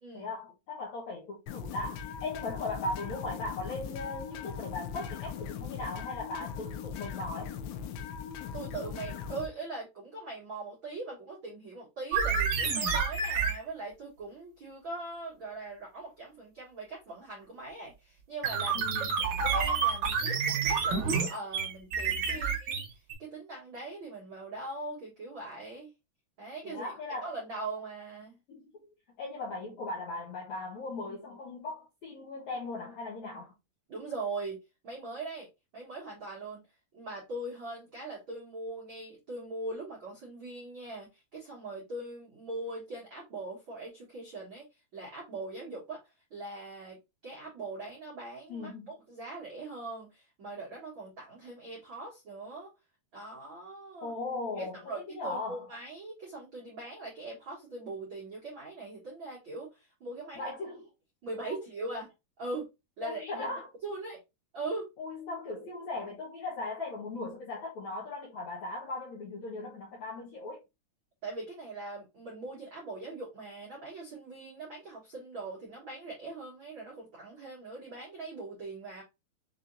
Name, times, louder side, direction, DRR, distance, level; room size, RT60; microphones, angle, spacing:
voice 1, 0.1-7.5 18.7-19.1 22.3-22.7 26.6-27.3 28.5-28.7 29.2-33.5 48.5-48.9 54.0-54.8 55.1-55.6 60.4-60.8 61.4-61.6 63.0-63.7 65.0-70.6, left 2 dB, 70° left, 1.8 m, -38 dB
sound 1, 1.5-9.5, left 7 dB, 85° left, 3.0 m, -40 dB
voice 2, 8.5-25.9 26.4-26.9 27.2-28.4 33.9-35.5 35.7-36.6 36.9-47.0 47.2-52.7 53.1-54.1 54.6-60.5 61.2-62.7 63.0-63.4 63.8-64.2 64.5-64.9 71.2-79.0, right 2 dB, 80° right, 1.1 m, -41 dB
sound 2, 12.1-13.6 18.4-23.1, right 5 dB, 60° right, 2.2 m, -29 dB
6.7 x 2.9 x 2.7 m
omnidirectional pair, 5.0 m